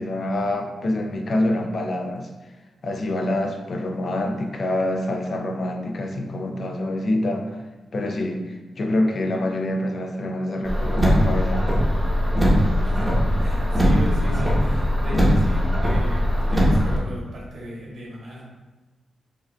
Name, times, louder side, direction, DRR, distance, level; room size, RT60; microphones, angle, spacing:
voice 1, 0.0-2.3 2.8-7.6 7.9-11.7, left 1 dB, 50° left, 4 dB, 0.4 m, -26 dB
Car, 10.6-17.0, equal, 15° right, 0.8 m, -20 dB
voice 2, 12.8-18.4, equal, 70° right, -5 dB, 1.3 m, -36 dB
4.8 x 2.5 x 2.3 m, 1.2 s
wide cardioid pair, 110°, 0 cm